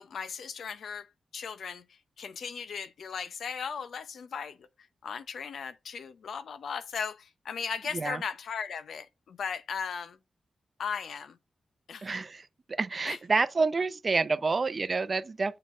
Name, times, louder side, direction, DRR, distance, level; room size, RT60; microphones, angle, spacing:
voice 1, 0.0-1.8 2.2-4.7 5.0-10.2 10.8-11.4 11.9-12.1 13.0-13.2, left 6 dB, 80° left, 0.6 m, -37 dB
voice 2, 12.0-15.6, right 4 dB, 35° right, 0.5 m, -28 dB
7.5 x 4.1 x 3.7 m
wide cardioid pair, 125°, 0 cm